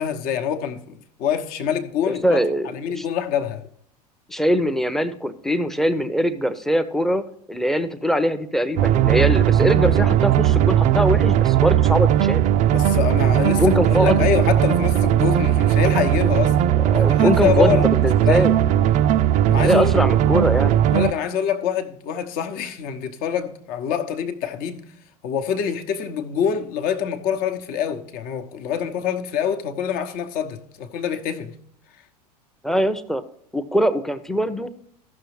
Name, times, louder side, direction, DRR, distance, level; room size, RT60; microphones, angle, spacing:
voice 1, 0.0-3.6 12.7-16.6 16.9-18.5 19.5-19.9 20.9-24.9 25.2-31.5, left 8 dB, 45° left, 0.9 m, -25 dB
voice 2, 2.2-2.7 2.9-3.0 4.3-12.4 13.5-14.3 16.9-18.5 19.6-20.8 32.6-33.2 33.5-34.7, equal, ahead, 0.7 m, -22 dB
sound 1, 8.8-21.1, right 11 dB, 35° right, 0.4 m, -18 dB
15.0 x 6.2 x 3.2 m
figure-of-eight pair, 80°, 21 cm